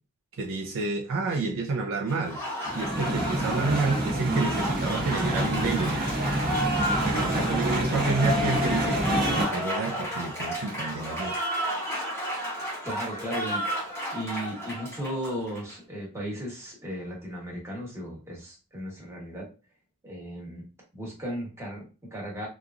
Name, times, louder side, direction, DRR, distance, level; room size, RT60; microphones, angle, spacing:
voice 1, 0.4-2.4 2.7-6.0 7.0-11.4, right 3 dB, 60° right, 0.4 m, -29 dB
Applause, 2.1-15.7, equal, 10° left, 0.8 m, -32 dB
sound 1, 2.6-9.5, right 1 dB, 45° right, 0.9 m, -28 dB
voice 2, 12.8-19.5 20.0-20.6 20.9-22.5, equal, 10° right, 1.1 m, -36 dB
2.9 x 2.4 x 2.4 m
head